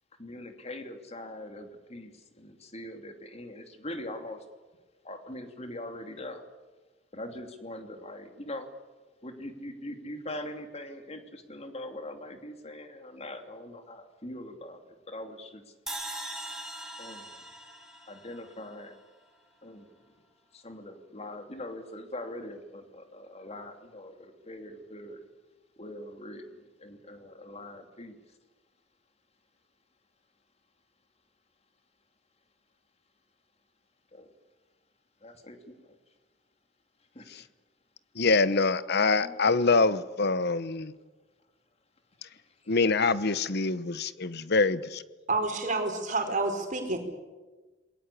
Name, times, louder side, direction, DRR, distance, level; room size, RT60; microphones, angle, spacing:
voice 1, 0.2-4.4 5.0-6.4 7.1-8.7 9.2-15.7 17.0-17.4 18.1-19.0 19.6-20.0 20.5-25.3 25.8-28.2 34.1-34.3 35.2-36.0 37.1-37.5 39.2-40.0 42.2-42.7, left 1 dB, 35° left, 6 dB, 2.8 m, -42 dB
sound 1, 15.9-19.1, right 1 dB, 5° right, 4.9 m, -41 dB
voice 2, 38.1-40.9 42.7-45.0, left 3 dB, 60° left, 15 dB, 1.1 m, -25 dB
voice 3, 45.3-47.0, right 3 dB, 40° right, 3 dB, 4.9 m, -29 dB
28.0 x 21.0 x 8.5 m, 1.3 s
head